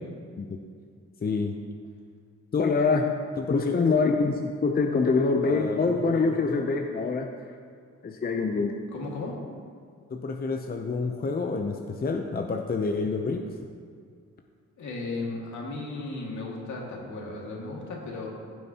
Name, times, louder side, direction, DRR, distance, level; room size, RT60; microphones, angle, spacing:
voice 1, 1.2-1.6 2.5-7.3 8.0-8.7 10.1-13.5, left 4 dB, 30° left, 3 dB, 0.6 m, -26 dB
voice 2, 8.9-9.4 14.8-18.3, left 3 dB, 65° left, -2 dB, 2.2 m, -35 dB
15.0 x 7.6 x 2.9 m, 2.1 s
cardioid pair, 95°, 31 cm